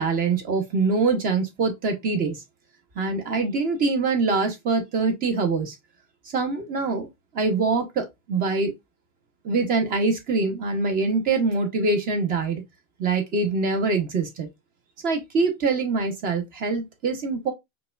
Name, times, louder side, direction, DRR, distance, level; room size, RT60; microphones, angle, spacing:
voice 1, 0.0-2.4 3.0-5.8 6.3-7.1 7.3-8.7 9.4-12.6 13.0-14.5 15.0-17.5, right 4 dB, 20° right, 0.6 m, -24 dB
4.8 x 2.2 x 2.3 m
hypercardioid pair, 140°, 43 cm